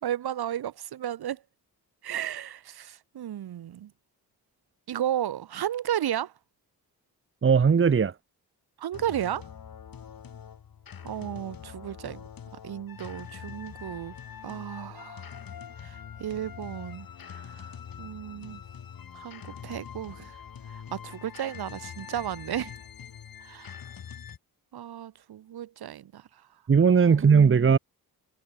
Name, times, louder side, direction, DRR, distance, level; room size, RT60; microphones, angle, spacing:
voice 1, 0.0-1.4 2.0-3.9 4.9-6.3 8.8-9.5 11.0-12.2 12.6-14.2 14.4-15.3 15.8-18.6 19.1-20.4 20.7-22.7 23.4-23.7 24.7-26.3 27.1-27.5, right 11 dB, 75° right, 1.5 m, -34 dB
voice 2, 7.4-8.1 26.7-27.8, right 6 dB, 30° right, 1.1 m, -18 dB
sound 1, 8.9-24.4, left 8 dB, 60° left, 4.4 m, -44 dB
cardioid pair, 95°, 38 cm